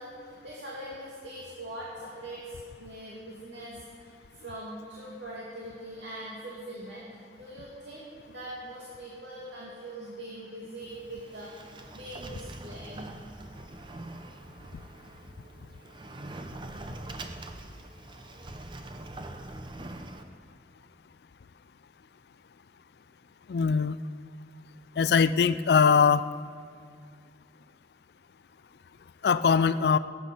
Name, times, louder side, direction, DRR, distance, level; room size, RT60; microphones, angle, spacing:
voice 1, 0.0-7.1 7.4-13.1 14.9-15.0, right 1 dB, 85° right, -6 dB, 2.4 m, -42 dB
Sliding door, 10.8-20.2, right 2 dB, 25° right, 0.7 m, -43 dB
voice 2, 23.5-24.0 25.0-26.3 29.2-30.0, left 6 dB, 65° left, 14 dB, 0.4 m, -22 dB
20.0 x 9.5 x 5.5 m, 2.1 s
head